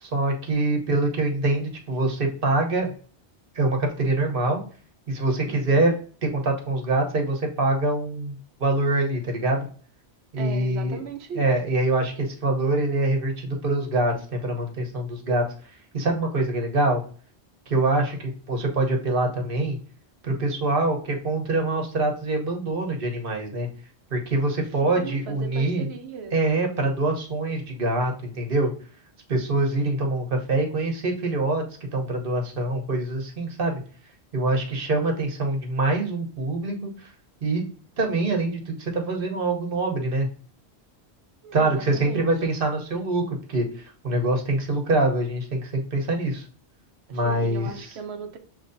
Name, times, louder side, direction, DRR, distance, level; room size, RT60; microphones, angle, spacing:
voice 1, 0.0-2.9 3.5-4.6 5.1-5.9 6.2-8.3 8.6-9.6 10.3-11.0 11.4-15.5 15.9-17.0 17.7-19.8 20.2-23.7 24.1-25.9 26.3-28.7 29.3-31.6 31.9-33.8 34.3-37.1 37.4-37.6 38.0-40.3 41.5-46.4 47.1-47.7, right 2 dB, 55° right, 2 dB, 1.2 m, -24 dB
voice 2, 5.5-5.9 10.4-11.5 24.8-26.4 41.4-42.3 47.1-48.4, right 5 dB, 75° right, 5 dB, 1.0 m, -37 dB
6.7 x 3.0 x 2.6 m, 0.43 s
omnidirectional pair, 1.1 m